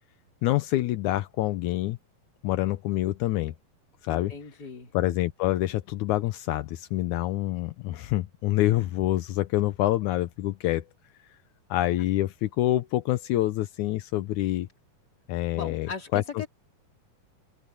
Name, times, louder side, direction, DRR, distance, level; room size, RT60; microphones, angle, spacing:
voice 1, 0.4-2.0 2.4-3.5 4.0-4.3 4.9-10.9 11.7-14.7 15.3-16.5, left 15 dB, 80° left, 1.7 m, -26 dB
voice 2, 4.1-4.9 15.5-16.5, left 5 dB, 25° left, 3.7 m, -38 dB
open air
omnidirectional pair, 4.3 m